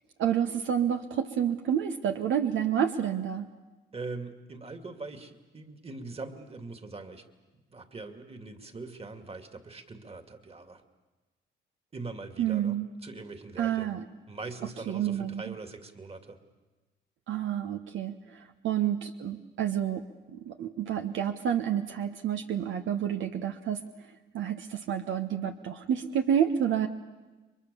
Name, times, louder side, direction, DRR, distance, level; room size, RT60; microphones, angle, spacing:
voice 1, 0.2-3.5 12.4-12.9 13.6-14.0 14.9-15.5 17.3-20.0 20.3-23.8 24.3-26.9, right 9 dB, 75° right, 7 dB, 1.2 m, -29 dB
voice 2, 3.9-7.2 7.5-10.8 11.9-12.8 13.0-14.0 14.3-16.4, right 3 dB, 30° right, 8 dB, 2.5 m, -42 dB
30.0 x 23.5 x 7.0 m, 1.2 s
cardioid pair, 90°, 20 cm